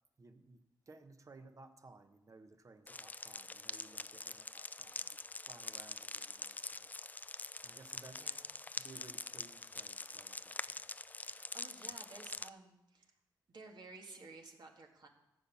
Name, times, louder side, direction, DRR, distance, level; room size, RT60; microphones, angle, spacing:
voice 1, 0.2-5.2 5.5-6.9 7.6-8.2 8.8-10.9, right 3 dB, 45° right, 8 dB, 1.1 m, -58 dB
sound 1, 2.9-12.5, left 3 dB, 20° left, 0.4 m, -45 dB
voice 2, 8.1-8.5 11.2-13.1 13.5-15.1, right 3 dB, 65° right, 2 dB, 1.9 m, -54 dB
14.5 x 5.6 x 8.5 m, 0.93 s
cardioid pair, 80°, 8 cm